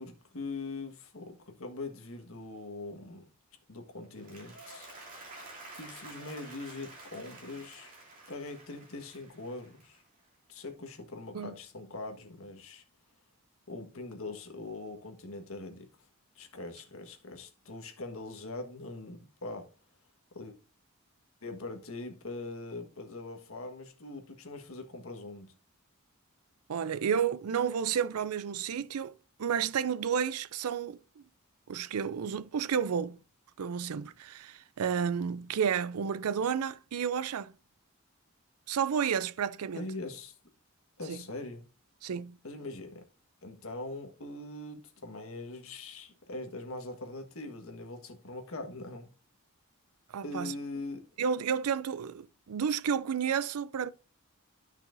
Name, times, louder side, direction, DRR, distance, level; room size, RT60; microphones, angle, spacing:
voice 1, 0.0-3.3 3.7-4.9 5.8-7.9 8.3-10.0 10.5-12.8 13.7-15.9 16.3-19.7 20.3-20.6 21.4-25.5 39.7-40.4 41.0-41.6 42.4-43.0 43.4-49.1 50.2-51.0, left 2 dB, 70° left, 1.5 m, -42 dB
Applause, 4.0-10.4, right 2 dB, 35° right, 2.9 m, -50 dB
voice 2, 26.7-29.1 29.4-31.2 31.7-33.2 33.6-37.5 38.7-39.9 41.1-41.2 42.0-42.4 50.1-50.5 51.2-53.9, right 7 dB, 85° right, 0.5 m, -31 dB
13.0 x 5.7 x 2.6 m
head